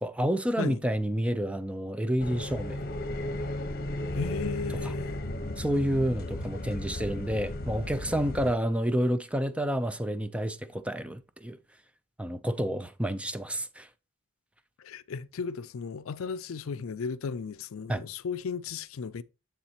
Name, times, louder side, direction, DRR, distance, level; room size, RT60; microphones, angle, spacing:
voice 1, 0.0-2.8 4.8-4.9 5.6-11.6 12.2-13.9 17.9-18.0, equal, 5° right, 0.5 m, -29 dB
sound 1, 2.2-8.5, left 1 dB, 50° left, 0.9 m, -35 dB
voice 2, 4.1-5.3 14.8-19.2, left 5 dB, 75° left, 0.4 m, -35 dB
7.3 x 7.2 x 2.9 m
head